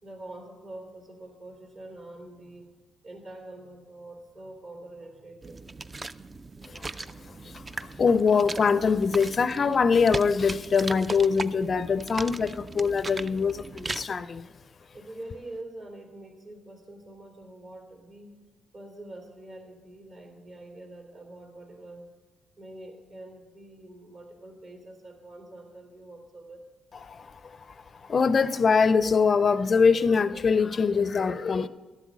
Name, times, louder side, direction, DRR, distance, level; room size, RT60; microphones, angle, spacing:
voice 1, 0.0-2.7 3.0-5.6 14.9-18.3 18.7-22.1 22.6-26.6, right 1 dB, 55° right, 3.1 m, -45 dB
sound 1, 5.4-14.0, right 3 dB, 25° right, 0.4 m, -38 dB
voice 2, 8.0-14.5 27.0-27.3 28.1-31.7, left 5 dB, 40° left, 0.4 m, -23 dB
12.0 x 8.1 x 6.2 m
cardioid pair, 90°, 0 cm